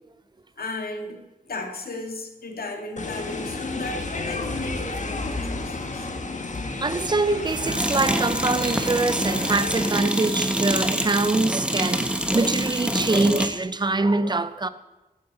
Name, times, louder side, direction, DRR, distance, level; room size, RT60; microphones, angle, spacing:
voice 1, 0.6-6.1, left 2 dB, 80° left, 2.2 m, -35 dB
sound 1, 3.0-9.9, left 3 dB, 50° left, 1.5 m, -32 dB
sound 2, 4.0-4.1 7.4-13.5, right 1 dB, 5° right, 1.4 m, -26 dB
voice 2, 6.6-14.7, right 3 dB, 30° right, 0.7 m, -24 dB
16.0 x 9.4 x 5.6 m
wide cardioid pair, 120°, 16 cm